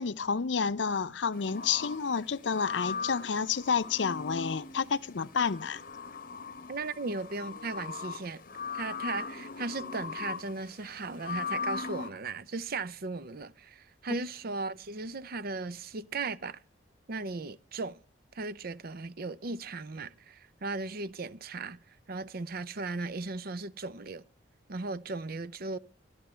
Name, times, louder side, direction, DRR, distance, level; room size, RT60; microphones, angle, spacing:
voice 1, 0.0-5.8, left 6 dB, 75° left, 0.6 m, -30 dB
sound 1, 1.3-12.1, left 5 dB, 50° left, 0.9 m, -39 dB
voice 2, 6.7-8.4 8.7-16.6 17.1-18.0 18.3-24.2 24.7-25.8, right 3 dB, 55° right, 0.7 m, -37 dB
14.0 x 11.0 x 5.6 m
head